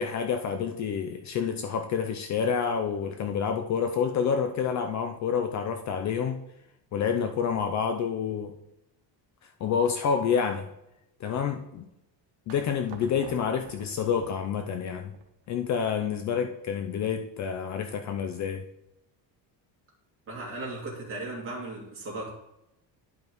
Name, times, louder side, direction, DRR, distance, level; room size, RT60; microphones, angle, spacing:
voice 1, 0.0-6.4 6.9-8.5 9.6-10.7 11.2-11.9 12.5-15.1 15.5-18.7, left 7 dB, 40° left, 0.5 m, -28 dB
sound 1, 12.5-15.5, right 8 dB, 70° right, 1.0 m, -50 dB
voice 2, 20.3-22.3, right 2 dB, 30° right, 2.5 m, -36 dB
11.5 x 5.3 x 3.0 m
cardioid pair, 170°, 44 cm